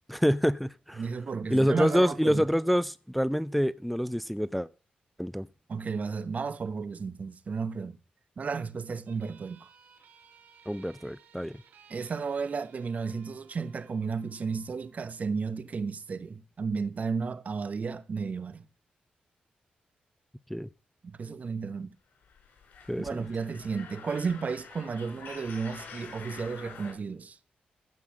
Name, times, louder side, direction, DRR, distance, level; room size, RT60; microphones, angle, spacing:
voice 1, 0.1-1.1 1.5-4.7 5.2-5.5 10.7-11.5 20.5-20.7 22.9-23.2, equal, ahead, 0.5 m, -27 dB
voice 2, 1.0-2.4 5.7-8.0 8.4-9.7 11.9-18.6 21.0-21.9 23.0-27.4, right 5 dB, 50° right, 1.1 m, -33 dB
sound 1, 9.1-16.1, right 7 dB, 90° right, 2.6 m, -59 dB
sound 2, 22.2-26.9, left 5 dB, 80° left, 4.8 m, -47 dB
15.5 x 5.6 x 7.5 m
cardioid pair, 65°, 3 cm